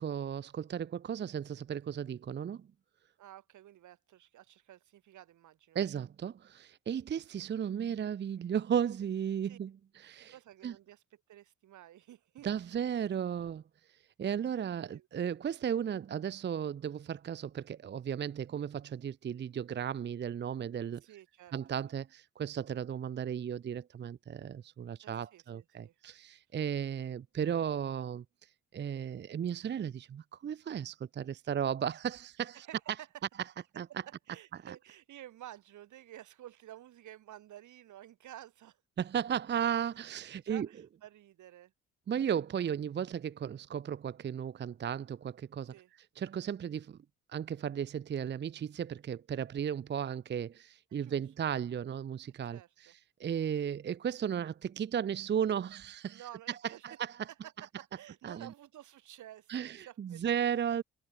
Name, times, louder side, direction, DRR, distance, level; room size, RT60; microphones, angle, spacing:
voice 1, 0.0-2.7 5.7-10.3 10.6-10.7 12.4-13.6 14.2-21.0 21.5-28.2 28.7-32.7 33.8-33.9 34.5-34.8 39.0-40.7 42.1-45.7 46.2-47.0 47.3-52.9 53.2-56.6 56.8-57.2 58.2-58.5 59.5-60.8, right 8 dB, 40° right, 0.6 m, -35 dB
voice 2, 3.2-5.8 9.4-9.6 10.3-12.7 14.9-15.1 21.0-21.6 21.9-22.0 25.0-26.0 32.5-33.2 33.9-38.8 40.3-41.7 45.7-45.9 50.9-51.2 51.5-51.6 52.5-52.9 56.1-56.9 57.4-60.5, right 13 dB, 80° right, 5.4 m, -52 dB
cardioid pair, 85°, 29 cm